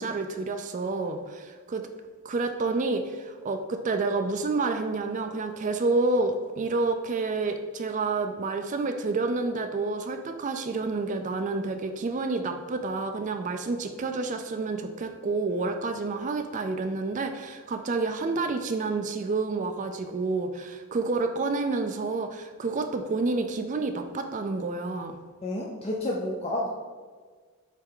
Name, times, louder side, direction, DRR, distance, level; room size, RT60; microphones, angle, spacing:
voice 1, 0.0-1.9 2.2-25.2, right 3 dB, 35° right, 6 dB, 0.4 m, -29 dB
voice 2, 25.4-26.7, left 1 dB, 25° left, -3 dB, 0.5 m, -30 dB
7.4 x 3.3 x 3.8 m, 1.5 s
head